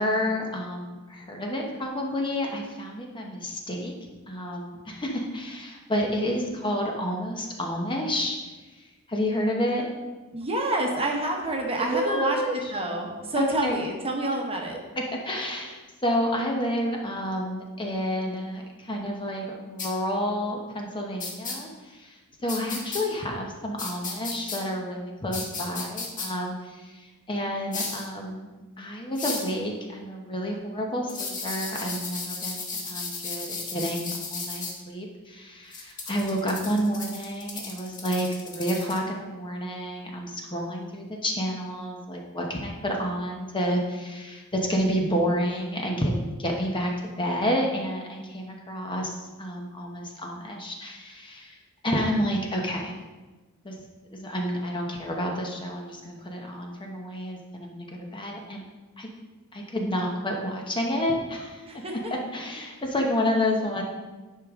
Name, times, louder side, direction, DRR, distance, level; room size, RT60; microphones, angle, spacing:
voice 1, 0.0-8.4 8.8-9.9 11.9-12.7 13.4-13.8 15.2-51.6 51.8-53.0 53.6-53.8 54.1-58.6 59.0-59.1 59.5-61.8 62.1-63.8, equal, 20° left, 1 dB, 0.9 m, -30 dB
voice 2, 10.3-12.4 12.7-14.8 22.5-22.8 61.7-62.1, right 1 dB, 25° right, 1 dB, 1.1 m, -28 dB
sound 1, 19.8-19.9 21.2-21.5 22.5-23.0 23.8-24.6 25.3-26.3 27.7-28.0 29.2-29.5 31.1-34.7 35.7-39.0, left 4 dB, 35° left, 1.3 m, -34 dB
10.5 x 5.1 x 3.6 m, 1.2 s
head